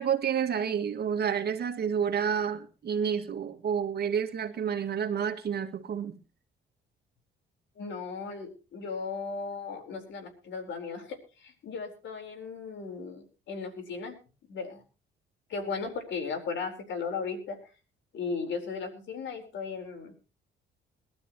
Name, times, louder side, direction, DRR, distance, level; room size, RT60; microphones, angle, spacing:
voice 1, 0.0-6.2, right 7 dB, 55° right, 2.0 m, -29 dB
voice 2, 7.8-14.2 14.5-14.8 15.5-17.6 18.1-20.1, left 5 dB, 70° left, 4.3 m, -36 dB
22.0 x 12.5 x 3.0 m
cardioid pair, 90°, 20 cm